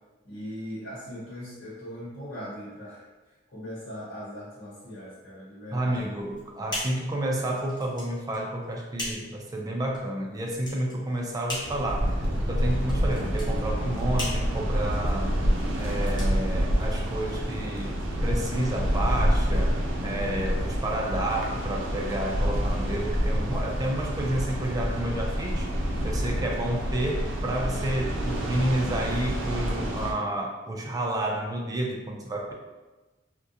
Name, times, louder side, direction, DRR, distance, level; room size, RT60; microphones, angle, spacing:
voice 1, 0.2-3.0 3.5-6.1, equal, 90° left, -9 dB, 0.9 m, -39 dB
voice 2, 5.7-15.4 15.8-25.7 26.0-32.5, right 1 dB, 20° right, 0 dB, 0.3 m, -30 dB
sound 1, 5.9-17.2, left 1 dB, 25° left, 0.7 m, -40 dB
sound 2, 11.6-30.1, equal, 90° right, 0.5 m, -28 dB
2.3 x 2.1 x 2.6 m, 1.2 s
head